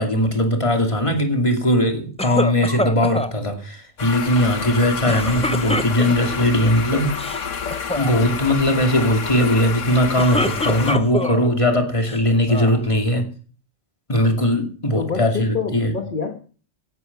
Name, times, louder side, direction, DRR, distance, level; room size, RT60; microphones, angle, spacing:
voice 1, 0.0-7.3 8.0-13.2 14.1-15.9, left 1 dB, 25° left, 2.6 m, -19 dB
sound 1, 2.2-3.3 5.1-6.4 7.1-7.4 7.7-8.1 9.9-11.5 12.0-12.8, left 1 dB, 10° left, 0.4 m, -26 dB
sound 2, 4.0-11.0, left 6 dB, 75° left, 1.6 m, -29 dB
voice 2, 14.9-16.4, left 5 dB, 40° left, 1.6 m, -27 dB
17.0 x 9.7 x 5.9 m
omnidirectional pair, 1.3 m